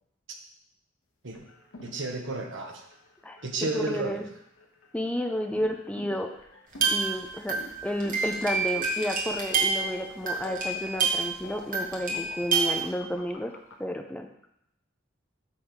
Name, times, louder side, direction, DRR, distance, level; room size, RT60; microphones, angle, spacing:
sound 1, 1.3-13.7, left 2 dB, 75° left, 1.0 m, -46 dB
voice 1, 1.8-2.8 3.4-4.2, right 3 dB, 65° right, 3 dB, 1.1 m, -32 dB
voice 2, 3.7-4.2 4.9-6.3 6.9-13.5 13.8-14.3, left 1 dB, 5° left, 4 dB, 0.5 m, -31 dB
sound 2, 6.7-11.4 11.7-12.8, right 5 dB, 45° right, 1.7 m, -28 dB
8.6 x 3.6 x 6.3 m, 0.76 s
head